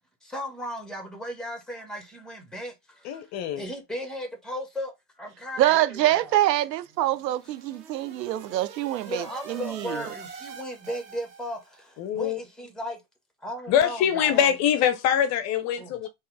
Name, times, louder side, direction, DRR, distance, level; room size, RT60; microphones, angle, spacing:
voice 1, 0.2-3.3 3.6-6.3 9.0-13.0 13.4-14.5 15.8-16.1, equal, ahead, 1.3 m, -36 dB
voice 2, 3.0-3.6 12.0-12.4 13.7-16.1, left 9 dB, 35° left, 0.7 m, -23 dB
voice 3, 5.6-10.1, right 14 dB, 85° right, 0.7 m, -25 dB
sound 1, 6.8-11.8, right 5 dB, 15° right, 0.3 m, -45 dB
3.5 x 3.1 x 4.6 m
supercardioid pair, 130°, 49 cm